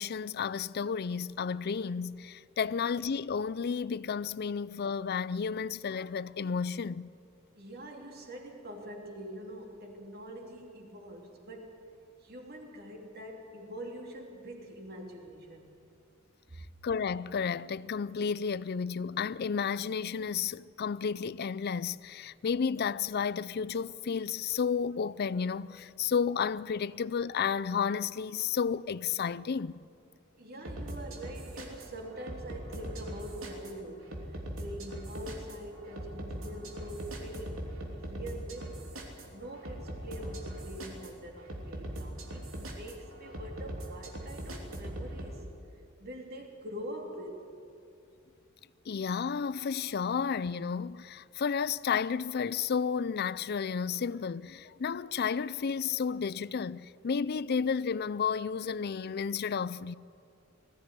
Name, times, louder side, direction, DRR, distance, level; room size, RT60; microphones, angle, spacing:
voice 1, 0.0-7.1 16.8-29.8 48.9-59.9, left 6 dB, 50° left, 0.4 m, -32 dB
voice 2, 7.5-11.9 12.2-15.7 16.5-16.6 30.4-38.7 39.3-45.4 45.7-47.4, equal, 50° right, 3.1 m, -44 dB
sound 1, 30.6-45.3, right 1 dB, 90° right, 3.1 m, -41 dB
20.5 x 15.5 x 9.6 m
head